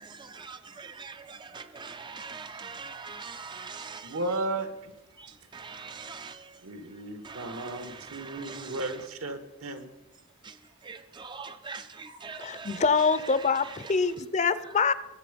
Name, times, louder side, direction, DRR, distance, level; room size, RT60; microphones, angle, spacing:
voice 1, 1.8-4.0 5.6-6.3 8.5-8.6 10.9-11.0 11.2-11.8 12.2-12.7, right 5 dB, 20° right, 0.5 m, -41 dB
voice 2, 4.0-4.9 6.6-9.9, right 2 dB, 75° right, 1.8 m, -34 dB
voice 3, 12.4-14.9, left 5 dB, 35° left, 0.6 m, -25 dB
23.0 x 8.3 x 5.2 m
head